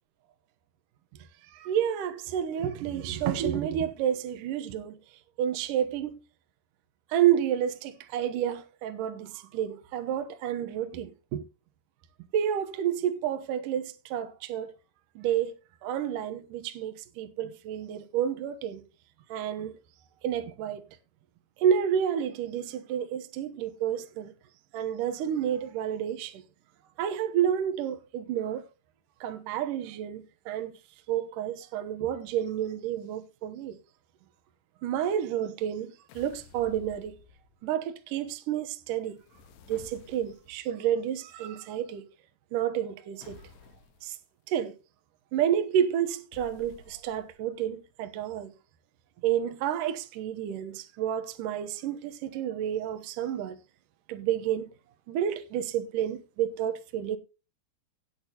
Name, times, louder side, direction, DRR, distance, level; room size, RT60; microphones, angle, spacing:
voice 1, 1.4-5.0 5.4-6.2 7.1-11.4 12.3-14.7 15.2-15.5 15.8-18.8 19.3-19.7 20.2-20.8 21.6-24.3 24.7-26.4 27.0-28.7 29.2-30.8 31.1-33.8 34.8-37.2 37.6-39.2 39.7-42.0 42.5-43.4 44.0-44.2 44.5-44.7 45.3-48.5 49.2-53.6 54.1-54.7 55.1-57.2, right 9 dB, 70° right, 2.0 m, -30 dB
sound 1, 36.1-37.7 39.1-40.7 43.2-44.1 46.3-47.4, left 5 dB, 85° left, 3.6 m, -52 dB
17.5 x 8.4 x 2.9 m
omnidirectional pair, 5.1 m